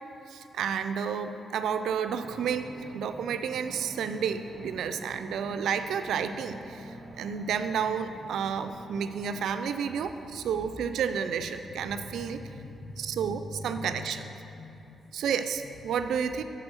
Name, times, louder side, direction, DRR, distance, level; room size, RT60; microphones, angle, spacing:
voice 1, 0.3-2.7 2.9-12.4 13.0-14.2 15.1-16.4, right 7 dB, 85° right, 9 dB, 0.3 m, -31 dB
sound 1, 2.2-9.6, right 1 dB, 25° right, 0.6 m, -46 dB
voice 2, 11.6-15.2 15.7-15.8, left 2 dB, 45° left, 5 dB, 0.5 m, -44 dB
6.1 x 4.4 x 6.2 m, 2.8 s
cardioid pair, 130°, 0 cm